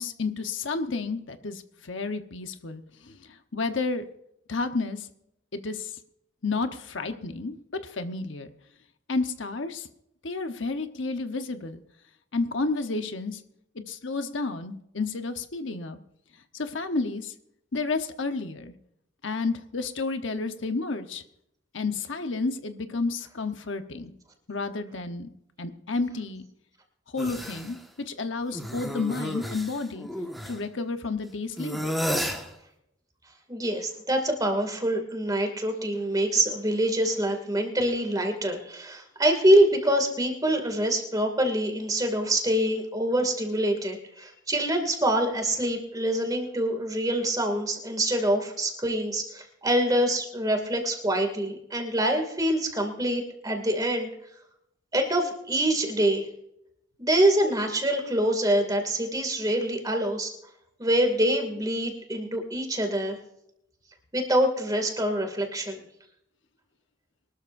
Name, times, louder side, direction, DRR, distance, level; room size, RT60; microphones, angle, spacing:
voice 1, 0.0-4.0 4.5-5.1 5.5-5.9 6.4-8.5 9.1-9.9 10.2-11.8 12.3-13.4 13.9-16.0 16.5-17.3 17.7-18.7 19.2-21.2 21.7-24.1 24.5-25.3 25.6-26.5 27.1-30.1 30.5-31.9, left 3 dB, 75° left, 8 dB, 1.1 m, -31 dB
sound 1, 27.2-27.7 28.5-30.6 31.6-32.5, equal, ahead, 1.5 m, -32 dB
voice 2, 33.5-54.1 54.9-56.2 57.0-60.3 60.8-63.2 64.1-65.8, right 1 dB, 20° right, 4 dB, 2.4 m, -25 dB
23.0 x 13.0 x 2.6 m, 0.78 s
head